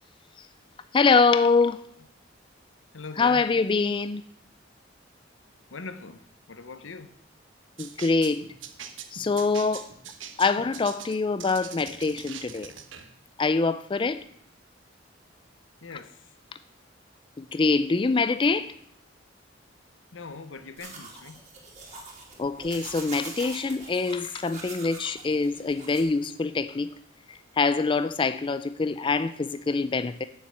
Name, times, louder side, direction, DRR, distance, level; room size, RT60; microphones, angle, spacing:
voice 1, 0.9-1.8 3.2-4.3 7.8-8.5 9.1-9.9 10.4-12.7 13.4-14.2 15.9-16.0 17.4-18.7 22.4-26.9 27.3-30.2, left 4 dB, 25° left, 0.4 m, -24 dB
voice 2, 2.9-3.5 5.7-7.1 15.8-16.2 20.1-21.5, left 4 dB, 80° left, 0.9 m, -41 dB
sound 1, 7.8-13.1, right 8 dB, 80° right, 1.2 m, -42 dB
sound 2, 20.8-26.0, right 3 dB, 40° right, 3.2 m, -43 dB
9.4 x 7.2 x 7.4 m
head